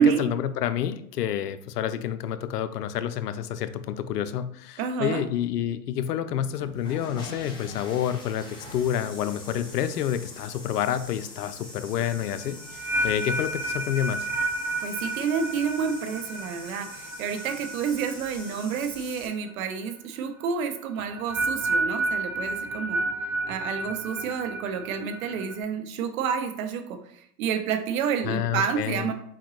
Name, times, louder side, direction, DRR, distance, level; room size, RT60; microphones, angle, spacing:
voice 1, 0.0-14.3 28.2-29.1, left 10 dB, 85° left, 12 dB, 0.6 m, -29 dB
voice 2, 4.8-5.2 14.8-23.0 23.5-29.1, right 7 dB, 60° right, 7 dB, 0.8 m, -29 dB
sound 1, 6.4-19.3, left 2 dB, 10° left, 1.2 m, -44 dB
sound 2, 11.9-19.1 19.3-19.7 21.0-25.6, right 2 dB, 5° right, 0.3 m, -31 dB
4.4 x 3.9 x 3.1 m, 0.69 s
hypercardioid pair, 115°, 46 cm